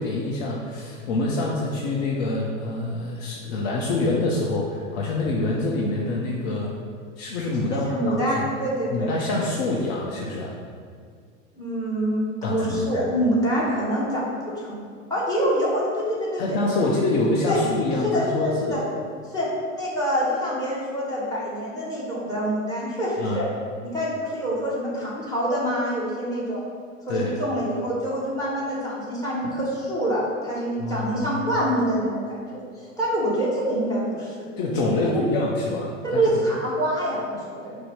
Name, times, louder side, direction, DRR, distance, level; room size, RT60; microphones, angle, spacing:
voice 1, 0.0-6.7 7.2-8.5 8.9-10.5 12.4-12.8 16.4-18.8 23.2-23.4 27.1-27.3 29.4-29.5 30.8-31.4 34.6-36.2, left 2 dB, 50° left, -2 dB, 0.6 m, -26 dB
voice 2, 7.7-9.1 11.5-16.6 17.5-17.6 18.0-18.8 19.3-23.5 23.8-26.6 27.1-32.6 33.0-34.3 34.8-35.2 36.0-37.8, equal, 10° left, -8 dB, 1.4 m, -26 dB
4.9 x 2.0 x 4.7 m, 2.1 s
hypercardioid pair, 95°, 39 cm